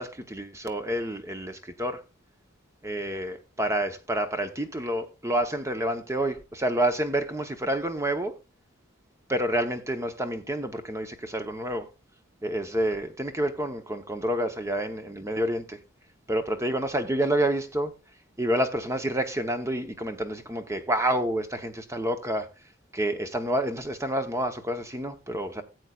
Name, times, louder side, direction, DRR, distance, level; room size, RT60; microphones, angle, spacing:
voice 1, 0.0-2.0 2.8-8.4 9.3-11.9 12.4-15.8 16.3-17.9 18.4-22.5 22.9-25.6, right 1 dB, 15° right, 0.8 m, -28 dB
17.0 x 8.0 x 2.3 m
head